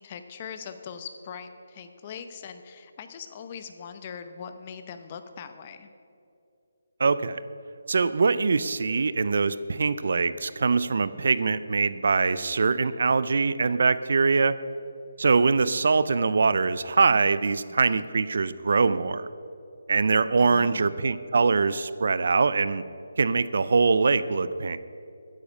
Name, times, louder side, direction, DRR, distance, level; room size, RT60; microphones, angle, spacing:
voice 1, 0.0-5.9 17.7-18.1 20.4-21.0, left 7 dB, 25° left, 9 dB, 0.7 m, -41 dB
voice 2, 7.0-7.4 7.9-14.6 15.2-19.3 19.9-22.8 23.2-24.8, right 4 dB, 55° right, 15 dB, 0.5 m, -23 dB
14.0 x 9.9 x 5.3 m, 2.7 s
hypercardioid pair, 170°, 0 cm